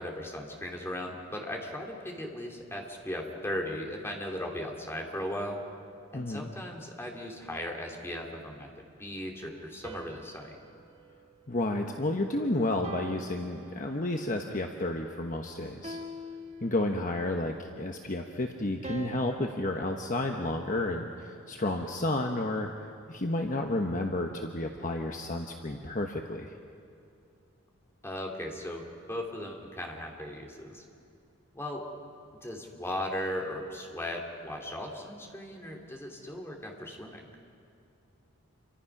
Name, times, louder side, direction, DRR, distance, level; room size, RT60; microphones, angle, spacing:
voice 1, 0.0-5.6 6.1-8.7 9.0-10.6 28.0-30.8 31.5-31.9 32.4-37.2, left 1 dB, 10° left, 0 dB, 2.6 m, -37 dB
voice 2, 6.1-6.5 11.5-16.0 16.6-22.7 23.1-26.5, left 2 dB, 35° left, 3 dB, 1.1 m, -31 dB
sound 1, 9.8-12.2 12.8-14.3 15.8-17.3 18.8-21.1, right 1 dB, 30° right, 1.2 m, -45 dB
28.5 x 24.5 x 6.0 m, 2.6 s
head